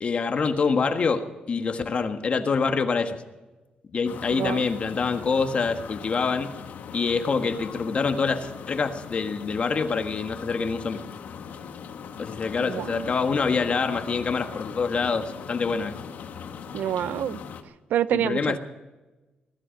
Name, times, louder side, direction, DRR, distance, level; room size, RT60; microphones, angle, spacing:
voice 1, 0.0-3.2 3.9-6.6 6.9-11.0 12.2-15.9 18.1-18.6, left 5 dB, 45° left, 6 dB, 1.5 m, -26 dB
sound 1, 4.0-17.6, left 7 dB, 80° left, 1.7 m, -40 dB
voice 2, 12.6-13.1 16.7-17.4 17.9-18.6, right 10 dB, 85° right, 18 dB, 0.5 m, -27 dB
20.5 x 13.5 x 5.3 m, 1.1 s
cardioid pair, 120°, 3 cm